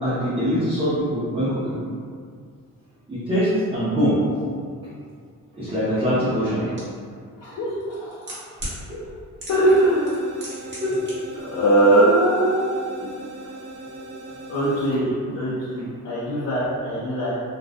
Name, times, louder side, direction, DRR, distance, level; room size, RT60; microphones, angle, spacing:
voice 1, 0.0-1.8 3.1-4.2 4.8-4.9 5.5-6.6 8.9-9.0 10.8-11.2 12.9-13.1 13.8-14.1, equal, 20° right, -11 dB, 0.5 m, -23 dB
sound 1, 6.8-6.9 7.8-8.8 9.4-9.8 10.1-11.1 11.4-11.5, right 1 dB, 35° right, 0.9 m, -34 dB
voice 2, 9.5-10.2 11.4-12.8 14.5-17.3, right 1 dB, 55° left, -9 dB, 0.5 m, -20 dB
sound 2, 9.5-14.9, right 2 dB, 90° right, 0.5 m, -39 dB
2.4 x 2.1 x 2.5 m, 2.1 s
cardioid pair, 155°, 31 cm